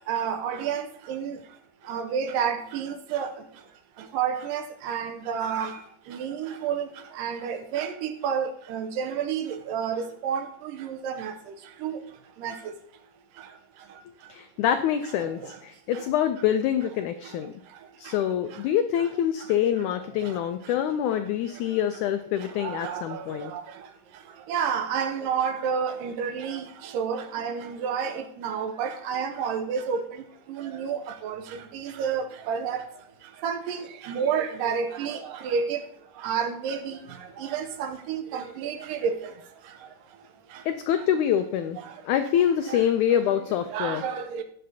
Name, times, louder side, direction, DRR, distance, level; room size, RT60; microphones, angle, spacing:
voice 1, 0.1-1.4 1.9-3.3 4.1-5.7 6.1-6.9 7.2-11.3 11.8-12.0 12.4-12.6 15.2-15.3 16.0-16.1 22.6-23.2 23.5-23.6 24.5-30.0 30.5-31.4 31.7-32.8 33.4-35.8 36.2-37.0 37.4-39.2 42.7-42.8 43.7-44.4, right 7 dB, 80° right, 2.3 m, -30 dB
voice 2, 14.3-17.5 18.0-23.5 40.7-41.8 42.0-44.0, left 10 dB, 85° left, 1.7 m, -25 dB
17.5 x 7.8 x 2.8 m
omnidirectional pair, 4.1 m